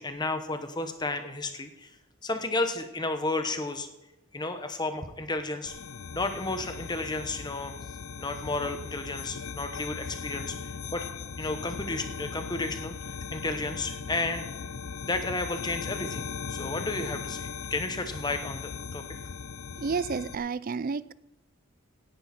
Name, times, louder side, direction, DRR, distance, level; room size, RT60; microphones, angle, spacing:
voice 1, 0.0-1.9 2.2-3.9 4.3-5.7 6.1-7.7 8.2-10.5 10.9-11.0 11.4-14.4 15.0-19.0, left 2 dB, 20° left, 1.1 m, -32 dB
sound 1, 5.7-20.3, left 6 dB, 75° left, 0.6 m, -38 dB
voice 2, 19.8-21.1, right 5 dB, 40° right, 0.4 m, -30 dB
17.0 x 10.5 x 4.4 m
head